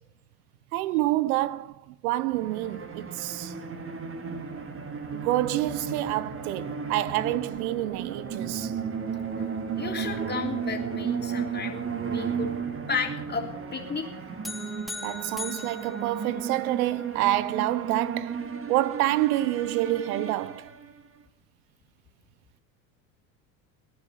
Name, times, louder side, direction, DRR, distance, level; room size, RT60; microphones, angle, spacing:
voice 1, 0.7-3.5 5.1-8.7 15.0-20.7, right 16 dB, 80° right, 0.8 m, -28 dB
sound 1, 2.3-21.1, right 6 dB, 30° right, 2.1 m, -34 dB
voice 2, 9.8-12.5 12.9-13.5 13.7-14.1, left 5 dB, 25° left, 3.2 m, -33 dB
sound 2, 14.4-16.9, left 3 dB, ahead, 2.0 m, -40 dB
18.5 x 10.0 x 6.5 m
supercardioid pair, 90°, 42 cm